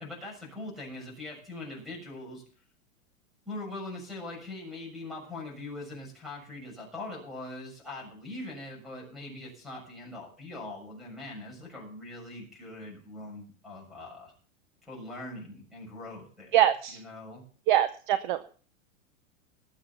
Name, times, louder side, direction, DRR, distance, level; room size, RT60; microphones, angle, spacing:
voice 1, 0.0-2.4 3.4-14.3 14.9-17.4, left 2 dB, ahead, 0 dB, 7.0 m, -42 dB
voice 2, 16.5-17.0 17.7-18.4, right 12 dB, 35° right, 12 dB, 0.8 m, -24 dB
20.0 x 7.8 x 5.8 m, 0.43 s
supercardioid pair, 165°, 42 cm